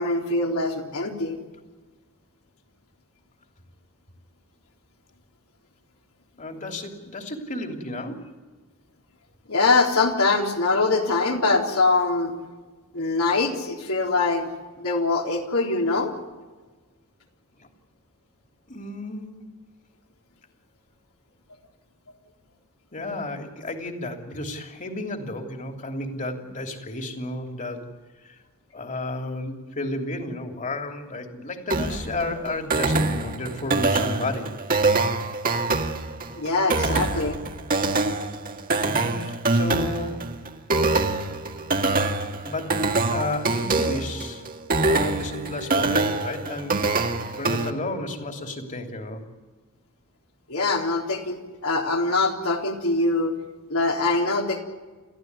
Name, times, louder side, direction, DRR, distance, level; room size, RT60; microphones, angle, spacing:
voice 1, 0.0-1.4 9.5-12.3 12.9-14.5 14.8-16.1 36.3-37.4 50.5-53.3 53.7-54.6, left 3 dB, 75° left, 1 dB, 3.8 m, -23 dB
voice 2, 6.4-8.2 17.6-17.7 18.7-19.5 22.9-27.9 28.2-28.4 28.7-34.6 38.8-40.3 42.4-44.4 44.8-49.3, left 2 dB, 35° left, 4 dB, 3.1 m, -32 dB
sound 1, 31.7-47.7, right 3 dB, 40° right, 1.8 m, -25 dB
30.0 x 14.5 x 9.6 m, 1.3 s
head